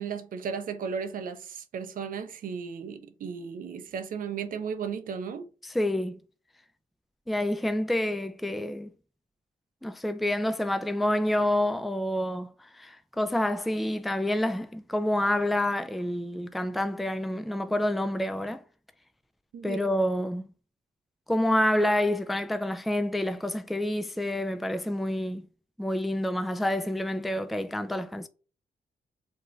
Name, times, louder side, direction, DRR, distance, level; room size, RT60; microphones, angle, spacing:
voice 1, 0.0-5.5 19.5-19.9, right 6 dB, 65° right, 0.5 m, -35 dB
voice 2, 5.6-6.2 7.3-8.9 9.8-18.6 19.6-20.5 21.3-25.5 25.8-28.3, left 1 dB, ahead, 0.3 m, -28 dB
2.5 x 2.2 x 3.0 m
supercardioid pair, 55°, 15 cm